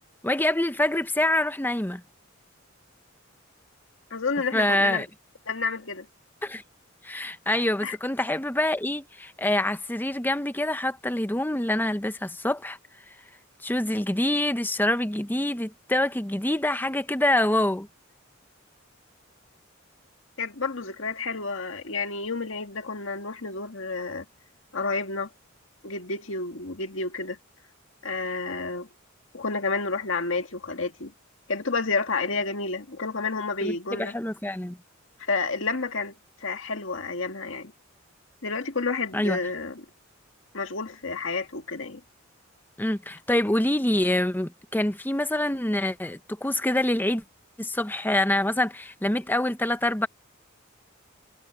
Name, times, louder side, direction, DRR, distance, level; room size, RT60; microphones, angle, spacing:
voice 1, 0.2-2.0 4.5-5.1 6.4-6.6 7.0-12.8 13.6-17.9 33.6-34.8 39.1-39.4 42.8-47.2 47.6-50.1, left 1 dB, 10° left, 0.8 m, -26 dB
voice 2, 4.1-5.0 5.5-6.1 7.8-8.0 20.4-24.3 24.7-25.3 25.8-27.4 28.0-28.9 29.3-31.1 31.5-34.1 35.2-36.1 36.4-37.7 38.4-39.9 40.5-42.0, left 4 dB, 70° left, 1.9 m, -30 dB
head